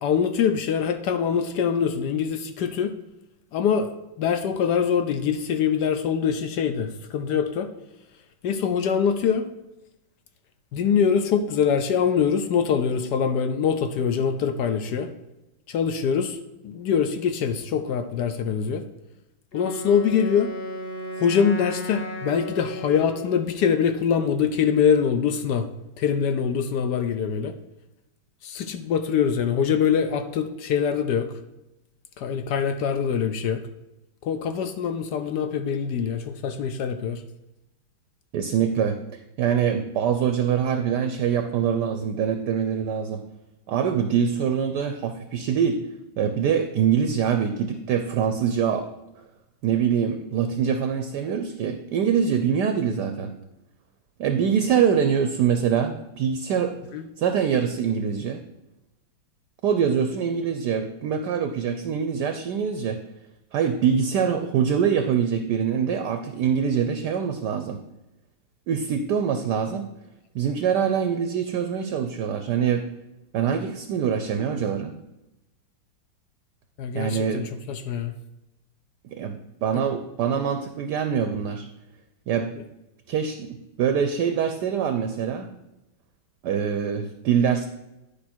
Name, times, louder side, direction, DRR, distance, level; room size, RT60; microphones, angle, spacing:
voice 1, 0.0-2.9 3.5-3.9 4.2-7.7 8.4-9.5 10.7-15.1 15.7-16.4 16.6-18.8 19.5-20.5 21.2-25.7 26.0-27.5 28.4-31.3 32.2-33.6 34.2-37.2 56.9-57.0 76.8-78.1 79.7-79.8, left 7 dB, 70° left, 9 dB, 1.1 m, -24 dB
Wind instrument woodwind instrument, 19.5-23.5, equal, 45° left, 0.7 m, -35 dB
voice 2, 38.3-43.2 43.7-45.8 46.2-48.9 49.6-53.3 54.2-56.7 57.2-58.4 59.6-63.0 63.5-67.8 68.7-69.9 70.3-72.9 73.3-74.9 76.9-77.5 79.1-81.7 82.3-82.5 83.1-85.5 86.4-87.7, right 7 dB, 70° right, 8 dB, 1.1 m, -24 dB
10.5 x 5.0 x 4.4 m, 0.94 s
omnidirectional pair, 2.2 m